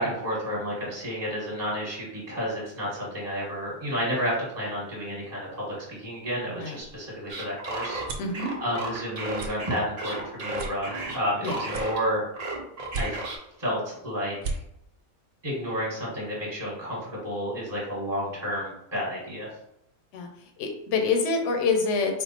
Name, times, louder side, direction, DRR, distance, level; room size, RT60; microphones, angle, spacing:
voice 1, 0.0-8.0 8.6-12.2 12.9-13.2 13.6-14.6 15.4-19.5, equal, 30° right, -5 dB, 1.4 m, -31 dB
sound 1, 6.8-8.4 8.9-9.1 9.3-9.5 10.0-10.1 10.5-11.3 11.7-12.4 12.8-13.5 13.9-14.0 14.3-14.6, right 3 dB, 75° right, 1.1 m, -35 dB
sound 2, 7.3-12.1 12.3-13.4, right 2 dB, 45° right, 0.5 m, -33 dB
voice 2, 8.2-8.5 11.4-11.6 20.1-20.3 20.6-22.2, left 4 dB, 60° left, 4 dB, 1.0 m, -26 dB
4.5 x 2.0 x 4.1 m, 0.80 s
omnidirectional pair, 1.6 m